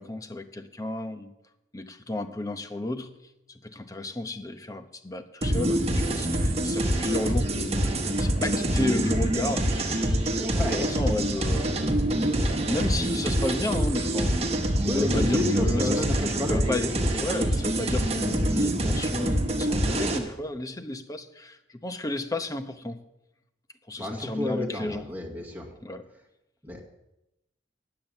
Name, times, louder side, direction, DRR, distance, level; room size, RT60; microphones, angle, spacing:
voice 1, 0.0-1.3 1.7-3.2 3.5-11.9 12.1-14.4 15.0-16.0 16.5-16.9 17.2-23.0 23.9-25.1 25.8-26.0, left 1 dB, 20° left, 8 dB, 0.8 m, -33 dB
sound 1, 5.4-20.2, right 1 dB, 35° right, 1.5 m, -25 dB
voice 2, 10.4-10.9 14.8-17.1 24.0-25.7 26.6-26.8, left 1 dB, 10° right, -2 dB, 2.1 m, -31 dB
9.4 x 7.8 x 8.8 m, 0.89 s
head